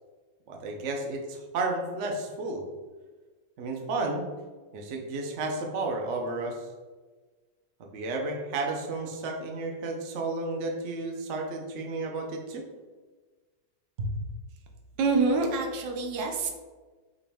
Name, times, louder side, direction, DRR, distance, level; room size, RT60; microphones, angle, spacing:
voice 1, 0.5-2.6 3.6-4.3 4.7-6.6 7.8-12.6 14.0-14.1, right 2 dB, 60° right, 1 dB, 0.7 m, -32 dB
voice 2, 15.0-16.5, right 4 dB, 80° right, 3 dB, 1.4 m, -26 dB
5.0 x 3.0 x 3.4 m, 1.3 s
omnidirectional pair, 2.0 m